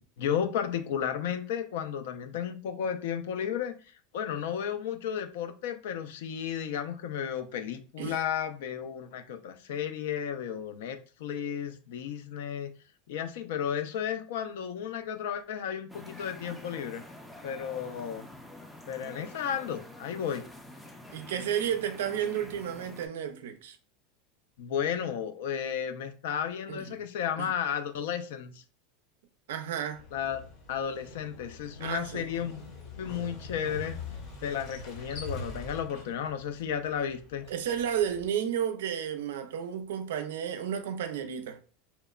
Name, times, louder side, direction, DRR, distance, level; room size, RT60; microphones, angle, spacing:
voice 1, 0.2-12.7 13.1-17.0 17.4-18.3 18.9-20.4 24.6-28.6 30.1-30.4 30.7-32.6 33.0-34.0 34.4-37.5, left 8 dB, 80° left, 0.3 m, -33 dB
sound 1, 15.9-23.1, left 1 dB, 5° left, 0.4 m, -47 dB
voice 2, 21.1-23.8 26.7-27.0 27.4-27.5 29.5-30.0 31.8-32.3 37.5-41.6, right 9 dB, 90° right, 0.4 m, -32 dB
Motorcycle, 29.9-38.3, left 3 dB, 50° left, 0.7 m, -44 dB
2.9 x 2.1 x 2.3 m
supercardioid pair, 140°, 0 cm